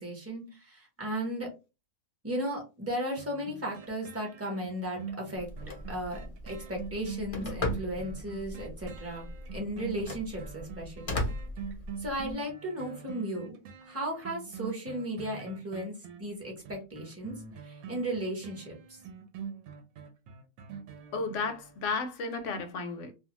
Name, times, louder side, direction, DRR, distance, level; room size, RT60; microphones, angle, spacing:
voice 1, 0.0-1.5 2.2-5.5 5.9-9.2 9.5-11.2 12.0-13.6 13.8-17.4 17.6-19.0, right 1 dB, 15° right, 0.6 m, -35 dB
sound 1, 3.2-21.9 22.3-22.4, right 6 dB, 75° right, 1.0 m, -44 dB
Telephone, 5.4-12.3, left 1 dB, 50° left, 0.4 m, -38 dB
voice 2, 21.1-23.1, left 4 dB, 65° left, 0.8 m, -33 dB
2.5 x 2.3 x 2.8 m
omnidirectional pair, 1.6 m